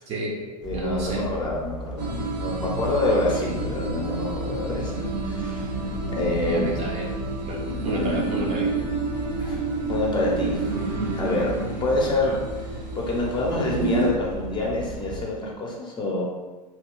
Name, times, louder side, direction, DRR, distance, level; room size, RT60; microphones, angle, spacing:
voice 1, 0.1-1.3 6.4-7.1 7.5-8.7, right 1 dB, 30° right, -3 dB, 0.7 m, -30 dB
voice 2, 0.6-5.7 6.1-6.8 9.4-9.6 9.9-10.7 11.2-11.5 11.8-12.4 12.9-16.2, left 2 dB, 20° left, -3 dB, 0.8 m, -27 dB
sound 1, 0.6-15.3, equal, ahead, 0.4 m, -36 dB
sound 2, 2.0-14.1, right 3 dB, 85° right, 0.8 m, -29 dB
2.9 x 2.2 x 3.7 m, 1.2 s
hypercardioid pair, 95°, 21 cm